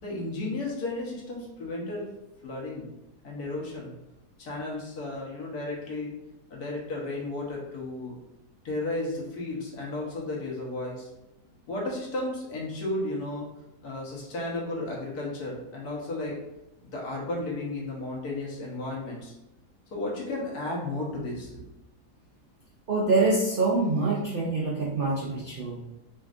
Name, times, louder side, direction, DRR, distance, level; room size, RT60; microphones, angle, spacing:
voice 1, 0.0-2.1 2.4-2.9 3.2-3.9 4.4-6.1 6.5-8.2 8.6-11.1 11.7-13.5 13.8-16.3 16.9-19.3 19.9-21.6, left 2 dB, 70° left, -3 dB, 1.5 m, -33 dB
voice 2, 22.9-25.8, right 3 dB, 85° right, -3 dB, 0.4 m, -25 dB
5.1 x 2.5 x 2.4 m, 0.96 s
omnidirectional pair, 1.7 m